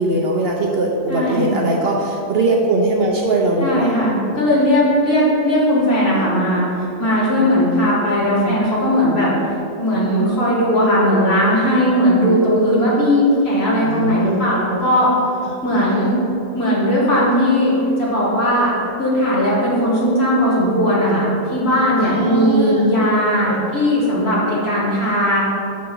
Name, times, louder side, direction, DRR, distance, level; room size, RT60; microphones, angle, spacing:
voice 1, 0.0-4.0 8.3-8.6 13.8-14.5 21.0-21.2 21.9-22.9 23.5-23.7, right 2 dB, 60° right, -2 dB, 0.8 m, -20 dB
voice 2, 1.1-1.6 3.6-9.3 9.8-15.2 15.6-16.2 16.5-18.7 19.0-25.4, equal, 50° left, -7 dB, 2.0 m, -17 dB
6.9 x 3.8 x 5.3 m, 2.8 s
omnidirectional pair, 1.4 m